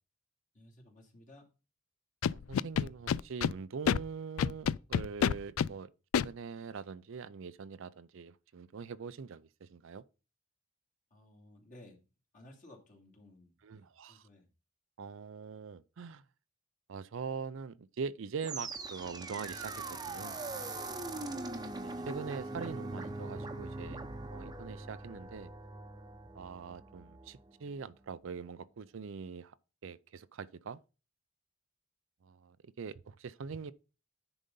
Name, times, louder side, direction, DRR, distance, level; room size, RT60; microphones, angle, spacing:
voice 1, 0.5-1.5 11.1-12.0 12.3-14.5 21.1-21.5, left 1 dB, 40° left, 2.6 m, -57 dB
Scratching (performance technique), 2.2-3.5 3.9-4.0 4.4-5.7 6.1-6.3, left 7 dB, 80° left, 0.3 m, -28 dB
voice 2, 2.3-10.0 13.6-14.2 15.0-16.2 16.9-20.4 21.8-24.0 24.3-25.5 26.4-29.5 29.8-30.8 32.3-33.7, right 5 dB, 70° right, 0.5 m, -43 dB
sound 1, 18.4-27.6, right 2 dB, 20° right, 0.8 m, -42 dB
10.0 x 4.0 x 5.3 m
head